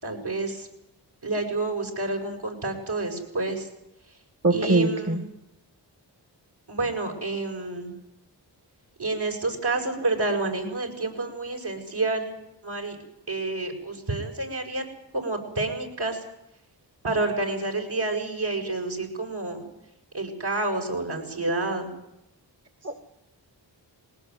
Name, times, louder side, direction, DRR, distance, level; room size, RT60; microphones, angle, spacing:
voice 1, 0.0-0.7 1.2-3.7 4.1-4.2 4.5-5.2 6.7-7.9 9.0-12.3 12.6-13.0 13.3-14.8 15.1-16.3 17.0-19.6 20.1-21.9, right 2 dB, 65° right, 2 dB, 7.3 m, -29 dB
voice 2, 4.4-5.2 22.8-22.9, right 2 dB, 35° right, 8 dB, 2.2 m, -22 dB
20.5 x 19.0 x 9.5 m, 0.87 s
cardioid pair, 45°, 44 cm